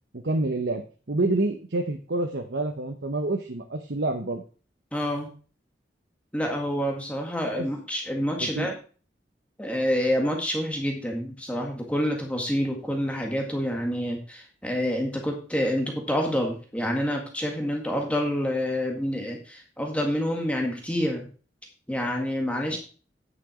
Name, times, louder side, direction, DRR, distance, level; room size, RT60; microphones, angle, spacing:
voice 1, 0.1-4.4 7.5-7.7 8.4-8.7 22.7-22.8, right 2 dB, 75° right, 5 dB, 1.0 m, -28 dB
voice 2, 4.9-5.3 6.3-8.7 9.6-21.3 21.9-22.8, equal, 10° left, 1 dB, 1.8 m, -27 dB
9.8 x 6.1 x 5.0 m, 0.38 s
head